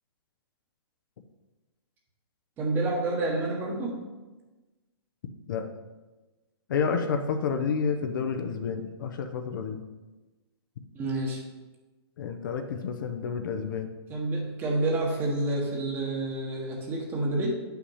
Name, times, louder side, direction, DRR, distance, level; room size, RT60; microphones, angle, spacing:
voice 1, 2.6-4.0 10.9-11.4 14.1-17.5, right 2 dB, 15° right, 0 dB, 1.2 m, -28 dB
voice 2, 6.7-9.8 12.2-13.9, left 6 dB, 50° left, 6 dB, 0.7 m, -29 dB
8.2 x 5.8 x 5.6 m, 1.2 s
hypercardioid pair, 165°, 14 cm